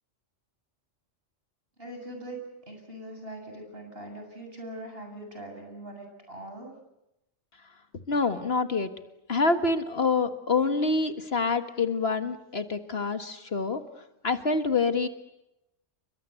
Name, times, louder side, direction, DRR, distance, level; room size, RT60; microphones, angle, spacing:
voice 1, 1.8-2.4 2.7-6.7, right 1 dB, 50° right, 4 dB, 7.9 m, -41 dB
voice 2, 8.1-8.9 9.3-13.8 14.2-15.1, left 4 dB, 55° left, 9 dB, 1.8 m, -26 dB
29.5 x 24.0 x 8.2 m, 0.87 s
omnidirectional pair, 1.2 m